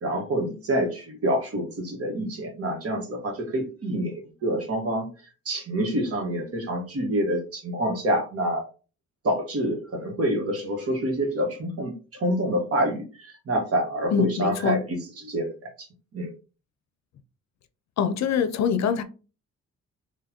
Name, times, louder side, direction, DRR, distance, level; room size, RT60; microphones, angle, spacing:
voice 1, 0.0-5.1 5.4-8.7 9.2-15.9 16.1-16.3, right 1 dB, 50° right, 1.5 m, -27 dB
voice 2, 14.1-14.8 18.0-19.0, left 7 dB, 65° left, 0.6 m, -24 dB
3.8 x 2.7 x 2.8 m
cardioid pair, 90°, 30 cm